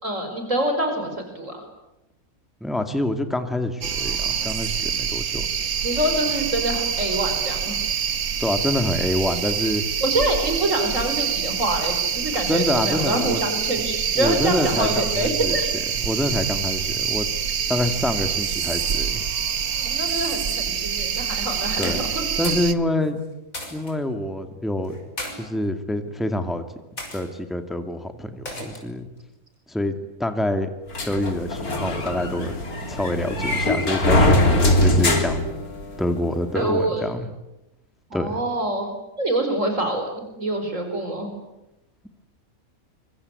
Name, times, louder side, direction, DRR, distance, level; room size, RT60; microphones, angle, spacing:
voice 1, 0.0-1.6 5.8-7.8 10.0-15.7 19.8-22.2 36.5-37.0 38.1-41.3, right 1 dB, 60° right, 5 dB, 5.1 m, -26 dB
voice 2, 2.6-5.5 8.4-9.8 12.5-13.4 14.2-15.6 16.0-17.3 17.7-19.2 21.8-22.0 22.4-23.2 23.7-24.9 25.4-26.6 27.1-29.1 29.7-29.9 30.2-30.7 31.1-32.5 32.9-35.5 36.0-37.3 38.1-38.4, left 1 dB, ahead, 7 dB, 2.2 m, -26 dB
sound 1, 3.8-22.7, right 7 dB, 75° right, 1.7 m, -26 dB
sound 2, 21.8-22.7 23.0-23.9 24.8-25.3 26.1-26.4 27.0-27.2 28.5-28.9, left 1 dB, 65° left, 6.5 m, -34 dB
sound 3, 30.9-36.2, left 1 dB, 85° left, 3.9 m, -21 dB
25.0 x 24.5 x 9.6 m, 0.91 s
omnidirectional pair, 1.5 m